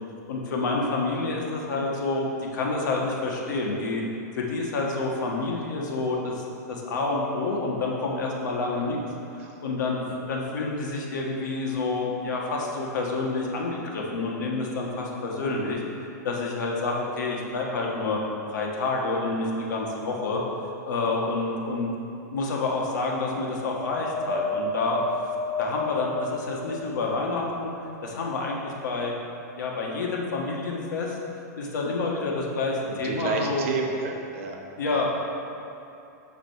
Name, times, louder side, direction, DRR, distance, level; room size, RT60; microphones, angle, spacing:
voice 1, 0.3-2.2 2.5-4.0 4.4-9.0 9.6-10.0 10.3-15.8 16.2-18.2 18.5-20.4 20.8-21.9 22.3-25.0 25.6-27.7 28.0-29.1 29.6-31.2 31.6-33.7 34.8-35.1, left 3 dB, 90° left, -2 dB, 1.4 m, -28 dB
Wind, 23.7-27.2 27.8-28.9 29.6-29.7, left 3 dB, 25° left, 1.6 m, -32 dB
voice 2, 32.9-34.6 34.9-35.0, right 4 dB, 45° right, 2 dB, 0.8 m, -31 dB
7.0 x 5.0 x 4.6 m, 2.7 s
supercardioid pair, 170°, 10 cm